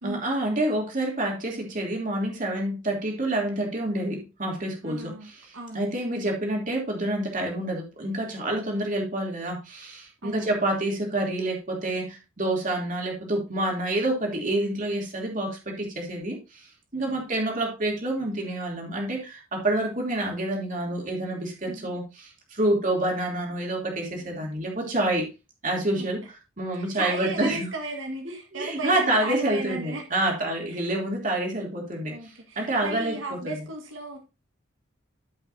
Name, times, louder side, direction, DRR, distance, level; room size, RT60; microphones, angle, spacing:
voice 1, 0.0-25.3 25.6-27.7 28.5-33.5, right 1 dB, 45° right, 0 dB, 3.0 m, -28 dB
voice 2, 4.8-5.9 10.2-10.5 17.0-17.2 21.7-21.9 26.0-26.1 26.9-30.0 30.7-30.8 32.0-34.2, right 2 dB, 85° right, 2 dB, 1.7 m, -35 dB
14.5 x 5.7 x 2.7 m, 0.27 s
head